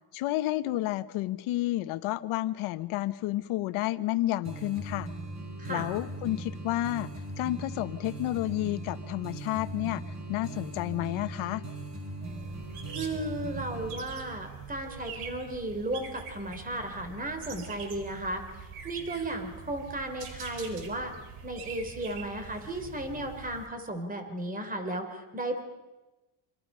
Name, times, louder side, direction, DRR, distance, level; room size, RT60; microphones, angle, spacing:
voice 1, 0.1-5.1 5.7-7.1 7.4-10.0 10.3-11.6, left 16 dB, 80° left, 11 dB, 1.3 m, -30 dB
sound 1, 4.4-14.0, right 2 dB, 35° right, 6.5 m, -39 dB
sound 2, 12.2-23.7, right 6 dB, 80° right, 4.5 m, -44 dB
voice 2, 12.9-18.4 18.8-21.1 21.4-25.6, right 1 dB, 15° right, 7 dB, 3.4 m, -35 dB
27.0 x 26.5 x 5.6 m, 1.1 s
cardioid pair, 135°, 49 cm